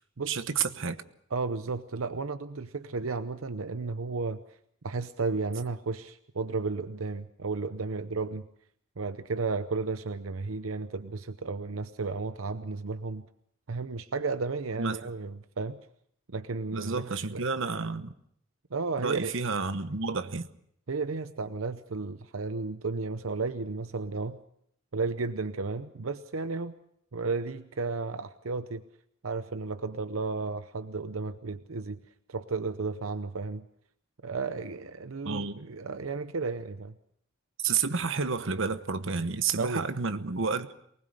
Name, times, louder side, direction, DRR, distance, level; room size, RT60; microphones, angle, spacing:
voice 1, 0.3-1.0 14.8-15.0 16.7-18.1 19.0-20.5 35.2-35.7 37.6-40.8, right 5 dB, 65° right, 1.1 m, -30 dB
voice 2, 1.3-4.4 4.8-8.5 9.0-13.2 13.7-15.8 16.3-17.0 17.3-17.4 18.7-19.3 20.9-24.4 24.9-26.7 27.1-28.8 29.2-32.0 32.3-33.6 34.2-36.9 39.6-39.9, right 4 dB, 85° right, 0.8 m, -33 dB
23.5 x 20.0 x 6.5 m
head